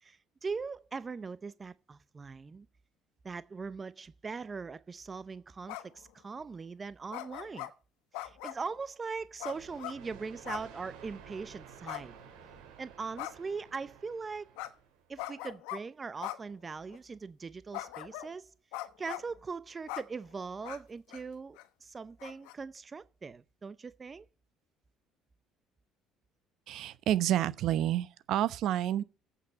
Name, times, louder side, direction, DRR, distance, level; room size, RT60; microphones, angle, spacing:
voice 1, 0.0-2.7 3.2-7.7 8.2-12.2 12.8-14.5 15.1-18.5 19.0-24.3, right 4 dB, 25° right, 0.6 m, -41 dB
sound 1, 5.7-6.0 7.1-7.7 8.1-8.7 9.4-10.0 10.4-10.7 11.0-11.1 11.9-12.6 13.2-13.6 14.6-14.7 15.2-15.8 16.2-16.4 16.9-17.0 17.7-18.3 18.7-19.3 19.9-20.0 20.6-20.8 21.1-21.2 21.6-21.7 22.2-22.5, left 16 dB, 85° left, 1.1 m, -40 dB
sound 2, 9.4-15.2, right 8 dB, 85° right, 3.6 m, -53 dB
voice 2, 26.7-29.0, right 12 dB, 65° right, 0.8 m, -29 dB
8.4 x 6.9 x 8.6 m
supercardioid pair, 100°, 0 cm